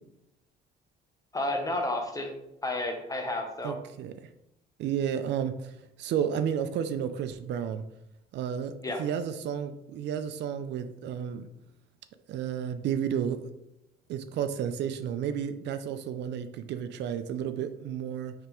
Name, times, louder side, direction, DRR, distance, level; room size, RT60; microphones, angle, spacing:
voice 1, 1.3-2.3 2.6-3.7 8.8-9.0, left 1 dB, 20° left, 3 dB, 0.9 m, -31 dB
voice 2, 3.6-4.1 4.8-5.7 6.0-7.8 8.3-8.7 9.0-11.5 12.3-13.5 14.1-18.3, right 8 dB, 70° right, 9 dB, 0.4 m, -32 dB
5.0 x 3.3 x 3.0 m, 0.86 s
cardioid pair, 90°, 19 cm